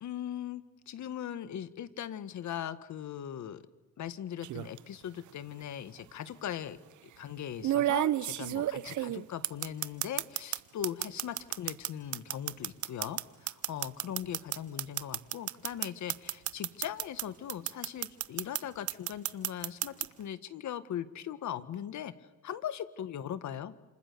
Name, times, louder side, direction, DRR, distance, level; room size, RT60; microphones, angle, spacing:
voice 1, 0.0-3.6 4.0-6.8 7.2-22.1 22.4-23.8, left 10 dB, 70° left, 13 dB, 1.8 m, -39 dB
sound 1, 4.4-4.8 6.0-6.1 7.6-10.6 10.8-17.2 17.5-18.6 18.9-20.1, right 13 dB, 75° right, 0.9 m, -31 dB
29.0 x 28.0 x 7.0 m, 1.1 s
cardioid pair, 90°, 30 cm